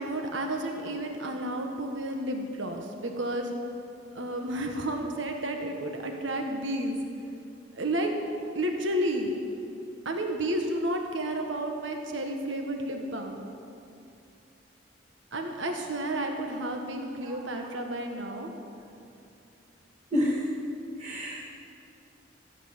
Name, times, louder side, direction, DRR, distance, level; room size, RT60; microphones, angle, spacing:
voice 1, 0.0-3.5 4.1-7.0 7.7-8.1 8.5-9.3 10.0-13.4 15.3-18.5, right 1 dB, 85° right, 3 dB, 1.5 m, -31 dB
voice 2, 20.1-20.4 21.0-21.5, equal, 40° right, -8 dB, 2.5 m, -28 dB
15.5 x 8.2 x 8.1 m, 2.6 s
head